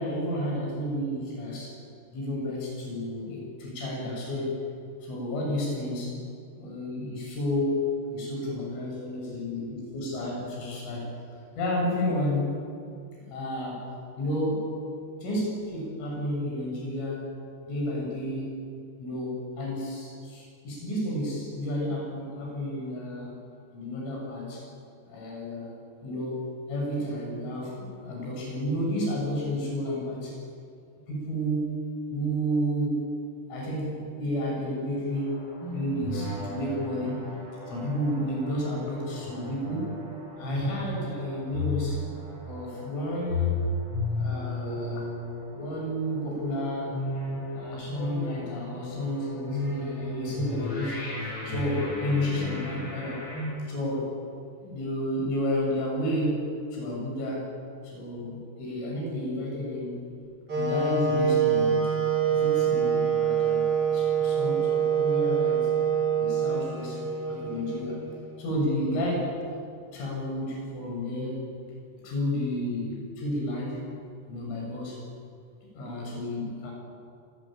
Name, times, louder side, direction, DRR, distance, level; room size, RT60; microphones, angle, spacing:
voice 1, 0.0-1.7 2.1-4.6 5.0-6.1 6.6-11.1 11.6-12.6 13.3-13.9 14.2-14.8 15.2-17.3 17.6-18.6 19.0-23.4 23.7-24.7 25.1-25.7 26.0-30.4 31.1-31.8 32.1-33.0 33.5-37.2 37.7-40.0 40.4-42.0 42.4-43.6 44.1-45.1 45.5-46.9 47.5-53.2 53.6-54.1 54.6-57.5 57.9-60.0 60.6-61.9 62.3-65.7 66.2-67.0 67.3-68.0 68.4-69.4 69.9-71.5 72.0-73.8 74.3-75.0 75.7-76.7, equal, 80° left, -2 dB, 9.6 m, -31 dB
sound 1, 35.1-53.5, left 2 dB, 25° left, 8.2 m, -34 dB
Wind instrument woodwind instrument, 60.5-68.5, right 7 dB, 30° right, 5.4 m, -25 dB
25.0 x 22.0 x 9.1 m, 2.4 s
omnidirectional pair, 5.6 m